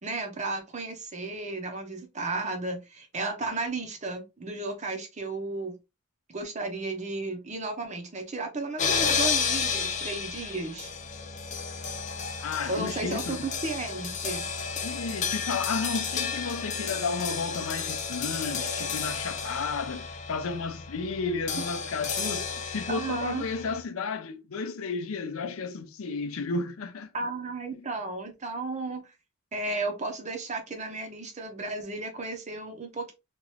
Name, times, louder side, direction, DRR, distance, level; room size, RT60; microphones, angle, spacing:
voice 1, 0.0-5.7 6.3-10.9 12.7-14.4 22.9-23.4 27.1-29.0 29.5-33.1, right 3 dB, 35° right, 0.8 m, -34 dB
sound 1, 8.8-23.8, left 6 dB, 35° left, 0.5 m, -32 dB
voice 2, 12.4-13.5 14.8-27.1 27.7-27.9, left 4 dB, 85° left, 0.5 m, -33 dB
2.9 x 2.5 x 3.1 m
head